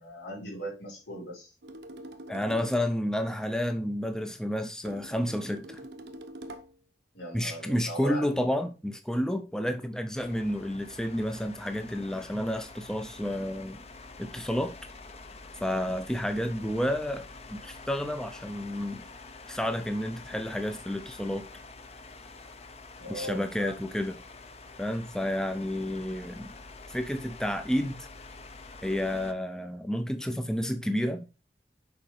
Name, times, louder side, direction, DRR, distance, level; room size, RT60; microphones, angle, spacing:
voice 1, 0.0-1.5 7.1-8.5 16.3-16.7 23.0-23.9, equal, 80° left, 4.1 m, -39 dB
sound 1, 1.6-2.8 4.8-6.8, right 1 dB, 75° right, 0.9 m, -44 dB
voice 2, 2.3-5.8 7.3-13.8 14.2-14.8 15.6-17.2 17.5-19.0 19.5-21.4 23.1-24.1 24.8-26.5 26.9-28.0 28.8-31.3, equal, 5° left, 0.5 m, -30 dB
sound 2, 10.2-29.3, left 3 dB, 35° left, 0.8 m, -47 dB
6.9 x 5.0 x 4.2 m
head